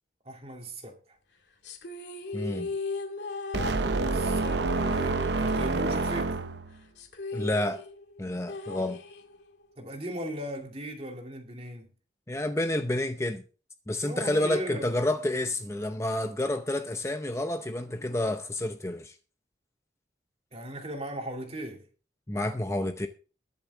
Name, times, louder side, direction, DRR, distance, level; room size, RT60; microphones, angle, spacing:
voice 1, 0.3-1.0 3.6-6.4 9.8-11.9 14.0-14.9 20.5-21.8, right 1 dB, 35° right, 2.6 m, -38 dB
sound 1, 1.6-6.3 6.6-6.7 7.0-9.6, left 3 dB, 85° left, 2.1 m, -38 dB
voice 2, 2.3-2.7 7.3-7.8 8.2-9.0 12.3-13.4 13.9-19.1 22.3-23.1, left 1 dB, 15° left, 0.7 m, -29 dB
sound 2, 3.5-6.8, right 3 dB, 75° right, 0.8 m, -28 dB
21.0 x 7.0 x 3.5 m
head